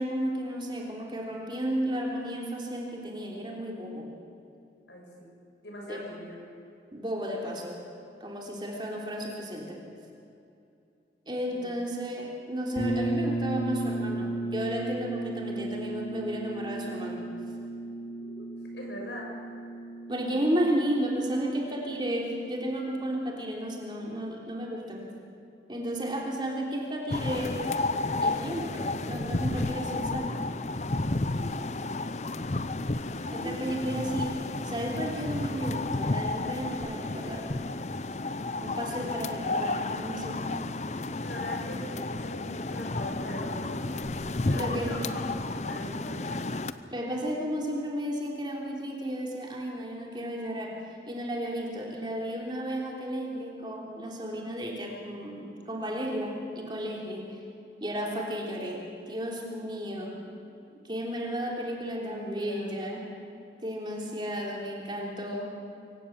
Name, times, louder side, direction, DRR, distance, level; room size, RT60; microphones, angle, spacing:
voice 1, 0.0-4.1 5.9-6.1 6.9-7.8 8.2-9.8 11.3-17.3 20.1-25.1 25.7-27.6 28.2-30.3 33.3-34.4 34.6-37.4 38.6-40.4 44.5-45.0 46.9-50.8 51.0-57.4 57.8-60.2 60.8-63.1 63.6-65.5, equal, 25° right, -1 dB, 3.4 m, -33 dB
voice 2, 4.9-5.3 5.6-6.4 11.5-11.7 18.2-18.5 18.7-19.3 31.3-31.6 33.3-33.5 41.2-43.9 44.4-45.3 45.7-46.4 60.1-60.4 60.7-60.8 61.2-61.6 62.0-62.7, equal, 85° left, -1 dB, 6.9 m, -41 dB
sound 1, 12.8-22.4, right 2 dB, 60° left, 2.6 m, -35 dB
sound 2, 27.1-46.7, left 2 dB, 40° left, 0.7 m, -32 dB
24.5 x 17.0 x 7.2 m, 2.6 s
head